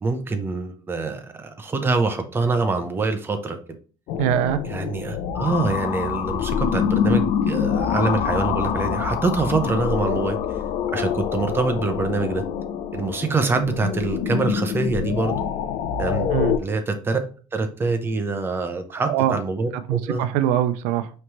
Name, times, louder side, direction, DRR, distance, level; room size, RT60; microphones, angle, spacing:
voice 1, 0.0-3.6 4.7-10.4 10.9-12.4 12.9-15.4 16.0-16.3 16.6-17.2 17.5-20.2, right 3 dB, 20° right, 0.7 m, -25 dB
sound 1, 4.1-16.6, left 8 dB, 70° left, 0.5 m, -25 dB
voice 2, 4.2-4.6 16.3-16.5 19.0-19.4 19.7-21.1, right 11 dB, 90° right, 0.4 m, -22 dB
5.0 x 3.2 x 2.9 m
cardioid pair, 130°, 12 cm